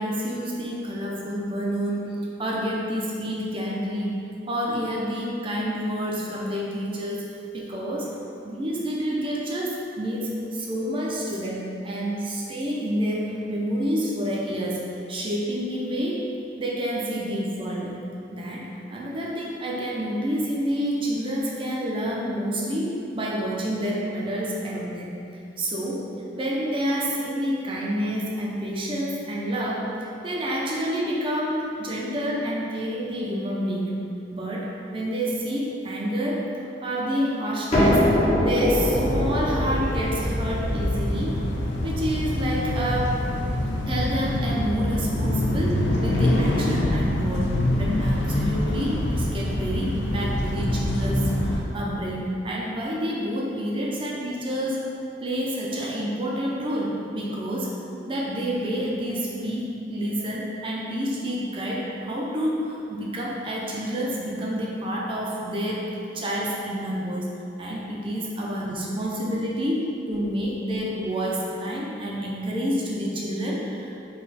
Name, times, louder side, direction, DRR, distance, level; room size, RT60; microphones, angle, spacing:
voice 1, 0.0-4.1 4.5-8.2 8.4-16.3 16.6-18.0 18.3-25.1 25.6-34.0 34.3-36.5 36.8-38.1 38.4-41.4 41.8-43.2 43.9-54.9 55.2-57.8 58.0-65.9 66.1-74.0, equal, 30° right, -3 dB, 0.5 m, -28 dB
sound 1, 37.7-43.3, equal, 35° left, 0.7 m, -25 dB
sound 2, 38.8-51.6, left 1 dB, 70° left, 0.4 m, -25 dB
4.0 x 2.3 x 4.0 m, 2.6 s
head